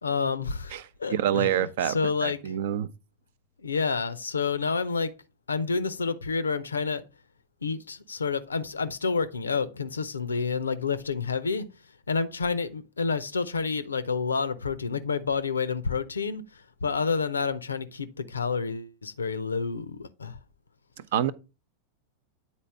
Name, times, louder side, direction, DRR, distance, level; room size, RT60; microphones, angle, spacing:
voice 1, 0.0-2.4 3.6-5.1 5.5-7.0 7.6-11.7 12.1-20.4, left 5 dB, 75° left, 0.5 m, -29 dB
voice 2, 1.1-2.9 21.1-21.3, right 10 dB, 55° right, 0.5 m, -26 dB
9.0 x 4.1 x 3.4 m
figure-of-eight pair, 90°, 0 cm